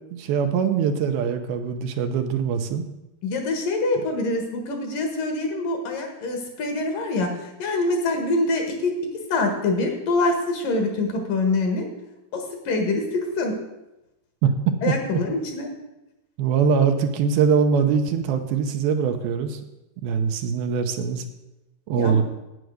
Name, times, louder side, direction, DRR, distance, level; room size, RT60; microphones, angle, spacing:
voice 1, 0.1-2.9 14.4-14.5 14.9-15.0 16.4-19.6 20.0-21.2 21.9-22.2, right 6 dB, 80° right, 6 dB, 2.6 m, -22 dB
voice 2, 3.2-8.9 9.3-11.9 12.3-13.6 14.8-15.7 21.9-22.2, left 2 dB, 65° left, 4 dB, 3.0 m, -25 dB
9.5 x 9.0 x 6.4 m, 0.97 s
omnidirectional pair, 4.5 m